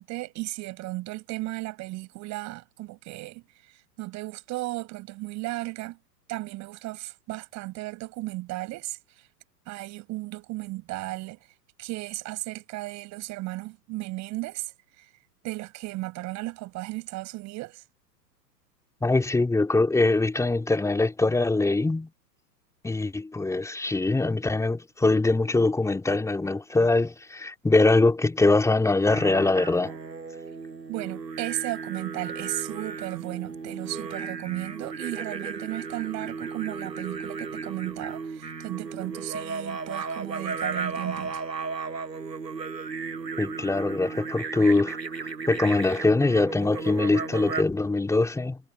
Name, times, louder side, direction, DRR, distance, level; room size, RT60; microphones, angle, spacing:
voice 1, 0.0-3.4 4.0-6.0 6.3-9.0 9.7-11.4 11.8-15.0 15.4-17.8 30.9-41.4, right 19 dB, 35° right, 6.5 m, -35 dB
voice 2, 19.0-22.1 22.8-29.9 43.4-48.6, left 2 dB, 5° left, 2.8 m, -23 dB
sound 1, 29.1-47.6, right 5 dB, 80° right, 6.1 m, -35 dB
figure-of-eight pair, 105°, 50 cm